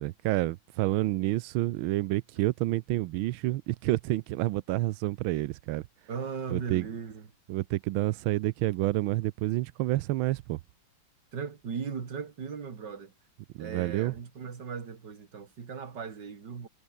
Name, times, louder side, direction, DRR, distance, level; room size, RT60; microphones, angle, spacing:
voice 1, 0.0-5.8 6.5-6.9 7.5-10.6 13.6-14.1, right 17 dB, 90° right, 1.4 m, -29 dB
voice 2, 6.1-7.3 11.3-13.1 13.6-16.7, right 6 dB, 60° right, 2.9 m, -38 dB
omnidirectional pair, 2.2 m